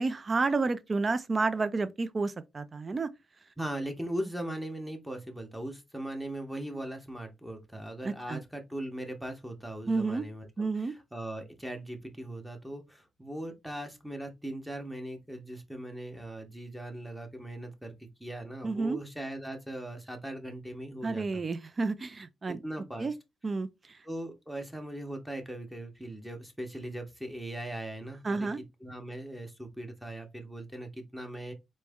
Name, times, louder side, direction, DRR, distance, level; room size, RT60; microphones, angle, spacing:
voice 1, 0.0-3.1 8.0-8.4 9.9-10.2 10.6-10.9 18.6-19.0 21.0-22.6 23.0-23.1 23.4-23.7 28.2-28.6, right 3 dB, 25° right, 0.4 m, -30 dB
voice 2, 3.6-21.2 22.5-23.1 24.0-31.5, right 1 dB, 5° right, 0.8 m, -39 dB
4.3 x 3.1 x 3.5 m
cardioid pair, 155°, 0 cm